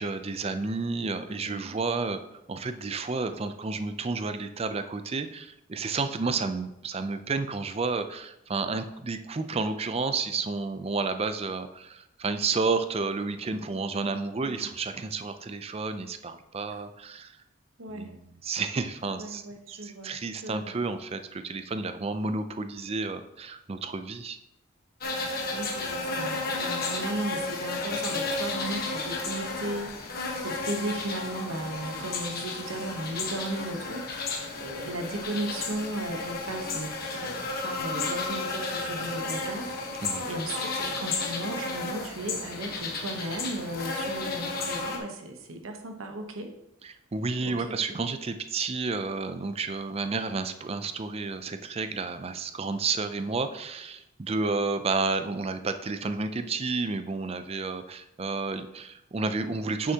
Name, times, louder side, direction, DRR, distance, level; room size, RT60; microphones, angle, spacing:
voice 1, 0.0-2.2 2.5-17.4 17.9-19.4 19.8-24.4 40.0-40.3 46.8-59.9, right 4 dB, 30° right, 10 dB, 0.4 m, -31 dB
voice 2, 1.4-1.8 14.4-14.7 16.7-16.8 17.8-18.1 19.1-20.2 20.4-20.7 25.2-39.8 40.3-46.5 47.4-48.0, right 1 dB, 80° right, 4 dB, 1.0 m, -36 dB
sound 1, 25.0-45.0, left 3 dB, 45° left, 1.2 m, -33 dB
9.3 x 6.3 x 2.8 m, 0.84 s
head